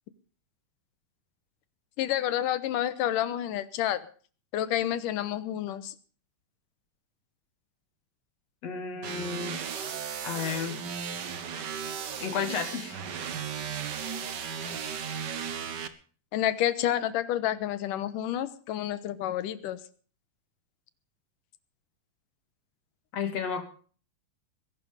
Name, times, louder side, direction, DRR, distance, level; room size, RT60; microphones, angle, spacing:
voice 1, 2.0-4.0 4.5-5.9 16.3-19.8, left 12 dB, 90° left, 14 dB, 2.7 m, -29 dB
voice 2, 8.6-9.6 10.2-10.8 12.2-13.0 23.1-23.6, left 6 dB, 55° left, 7 dB, 3.3 m, -32 dB
sound 1, 9.0-15.9, right 7 dB, 60° right, 1.1 m, -35 dB
21.5 x 11.5 x 5.1 m, 0.42 s
omnidirectional pair, 3.7 m